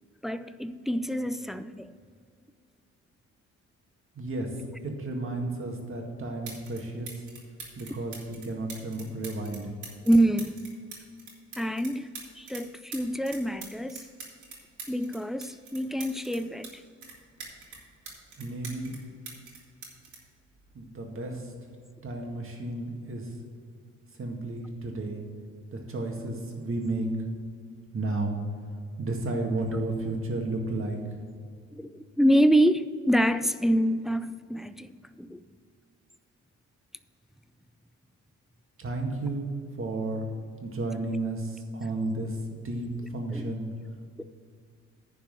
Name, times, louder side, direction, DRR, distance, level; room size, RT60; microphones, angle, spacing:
voice 1, 0.2-1.9 10.1-10.6 11.6-12.1 12.4-14.0 14.9-16.7 31.7-34.9 35.2-35.4 43.3-43.5 44.2-44.3, equal, ahead, 0.3 m, -26 dB
voice 2, 4.1-7.3 7.8-9.7 18.4-19.0 20.7-21.5 22.0-23.4 24.1-25.2 25.7-27.1 27.9-28.4 29.0-31.2 38.8-39.5 39.8-40.3 40.6-43.7, right 2 dB, 45° right, 2.0 m, -33 dB
sound 1, 6.4-6.8 7.1-12.6 12.9-16.7 17.0-19.0 19.3-21.1 22.0-22.2, right 5 dB, 75° right, 2.7 m, -44 dB
10.5 x 4.7 x 7.6 m
cardioid pair, 90°, 30 cm